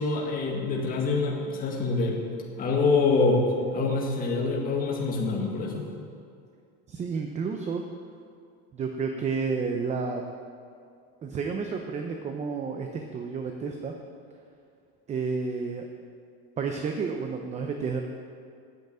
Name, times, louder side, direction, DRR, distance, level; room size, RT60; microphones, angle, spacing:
voice 1, 0.0-2.2 2.6-3.4 3.7-5.9, left 3 dB, 30° left, -1 dB, 1.9 m, -25 dB
voice 2, 6.9-7.8 8.7-10.2 11.2-13.9 15.1-15.8 16.6-18.0, right 5 dB, 20° right, 4 dB, 0.7 m, -31 dB
9.4 x 8.0 x 8.8 m, 2.3 s
cardioid pair, 145°, 31 cm